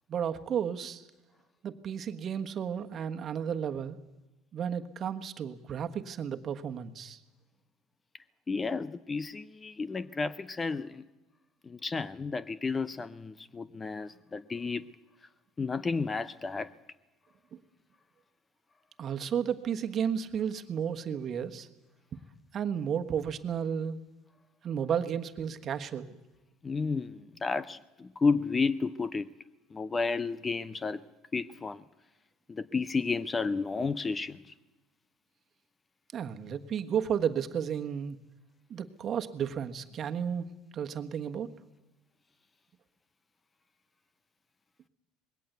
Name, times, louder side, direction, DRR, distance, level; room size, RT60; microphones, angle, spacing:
voice 1, 0.1-1.0 1.6-4.0 4.5-7.2 19.0-21.7 22.5-24.0 24.6-26.2 36.1-38.2 38.7-41.5, right 8 dB, 40° right, 7 dB, 1.4 m, -33 dB
voice 2, 8.5-11.0 11.6-14.8 15.6-16.7 26.6-29.3 29.7-31.0 31.3-31.8 32.5-34.4, left 4 dB, 20° left, 17 dB, 0.6 m, -32 dB
20.5 x 17.0 x 8.1 m, 1.1 s
supercardioid pair, 100°, 0 cm